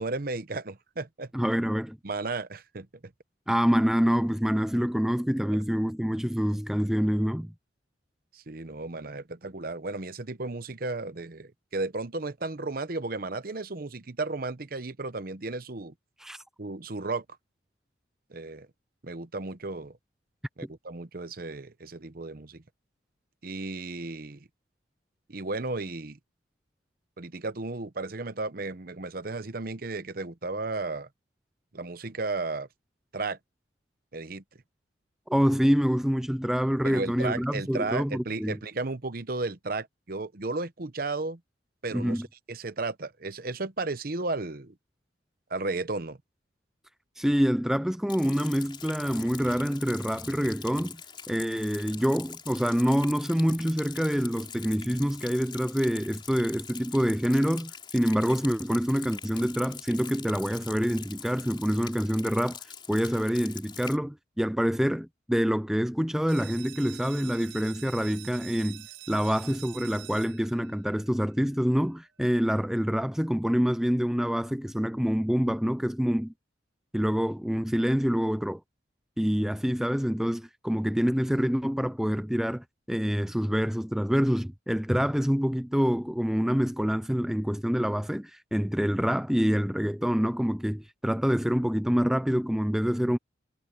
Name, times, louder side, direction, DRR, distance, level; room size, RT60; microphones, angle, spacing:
voice 1, 0.0-1.3 2.0-3.1 8.3-15.9 16.6-17.2 18.3-18.7 19.0-20.0 20.6-22.6 23.4-24.5 25.3-26.2 27.2-31.1 31.7-32.7 33.1-33.4 34.1-34.4 36.8-41.4 41.8-42.2 42.5-44.7 45.5-46.2, right 3 dB, 50° right, 0.9 m, -34 dB
voice 2, 1.3-2.0 3.5-7.5 16.2-16.4 35.3-38.6 41.9-42.3 47.2-51.0 51.3-62.6 62.9-76.3 76.9-78.6 79.2-93.2, equal, ahead, 0.4 m, -26 dB
Rain, 48.1-64.0, left 7 dB, 25° left, 4.1 m, -44 dB
sound 1, 66.3-71.7, right 17 dB, 80° right, 1.7 m, -46 dB
head